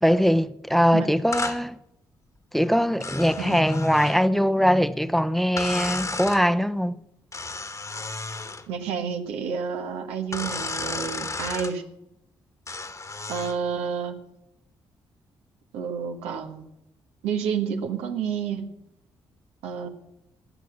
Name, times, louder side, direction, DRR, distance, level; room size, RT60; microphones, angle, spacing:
voice 1, 0.0-1.8 2.5-7.0, equal, ahead, 0.8 m, -21 dB
sound 1, 1.3-1.6 3.0-4.2 5.6-6.4 7.3-8.7 10.3-11.7 12.7-13.6, left 3 dB, 30° left, 1.4 m, -33 dB
voice 2, 8.7-11.8 13.3-14.2 15.7-16.7 17.2-18.7 19.6-19.9, right 7 dB, 85° right, 1.3 m, -30 dB
17.5 x 6.2 x 8.5 m
supercardioid pair, 50°, 10 cm